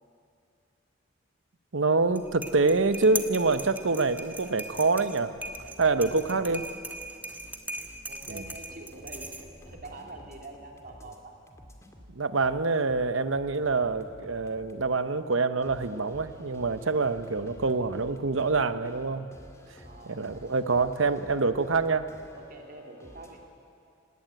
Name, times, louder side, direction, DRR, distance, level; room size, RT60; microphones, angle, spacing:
voice 1, 1.7-5.3 5.8-6.6 8.3-8.4 12.1-19.3 20.1-22.1, right 3 dB, 70° right, 12 dB, 0.9 m, -26 dB
sound 1, 2.0-9.7, right 2 dB, 10° right, 1.4 m, -40 dB
sound 2, 5.4-11.2 11.5-14.9 15.6-23.4, equal, 15° left, 2.1 m, -51 dB
voice 2, 5.9-6.3 8.0-11.4 19.8-20.7 22.3-23.4, right 2 dB, 45° right, 2 dB, 3.0 m, -46 dB
18.5 x 18.0 x 9.2 m, 2.5 s
head